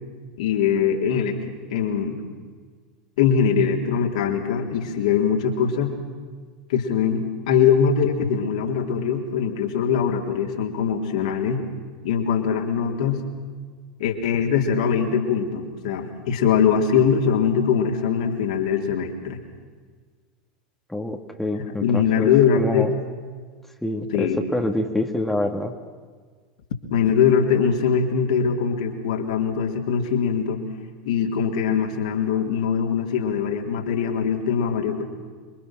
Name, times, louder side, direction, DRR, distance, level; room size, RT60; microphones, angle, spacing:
voice 1, 0.4-1.4 1.7-2.2 3.2-5.9 6.7-11.6 12.0-13.2 14.0-19.4 21.7-22.9 24.1-24.4 26.9-30.7 31.1-35.0, left 7 dB, 60° left, 1 dB, 3.6 m, -22 dB
voice 2, 20.9-22.3 22.6-22.9 23.8-25.7, left 1 dB, 5° left, 3 dB, 2.2 m, -26 dB
28.0 x 24.0 x 6.1 m, 1.6 s
figure-of-eight pair, 85°, 4 cm